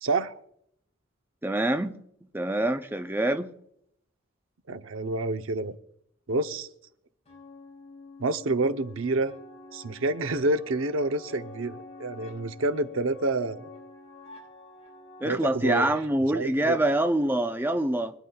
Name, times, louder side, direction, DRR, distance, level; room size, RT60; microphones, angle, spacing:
voice 1, 0.0-0.4 4.7-5.8 6.3-6.7 8.2-9.3 9.7-13.7 15.2-15.9 16.3-16.8, right 2 dB, 85° right, 0.8 m, -28 dB
voice 2, 1.4-2.0 2.3-3.5 15.2-18.1, right 1 dB, 10° right, 0.6 m, -25 dB
sound 1, 7.3-15.2, left 3 dB, 35° left, 5.8 m, -48 dB
24.5 x 10.0 x 2.3 m
head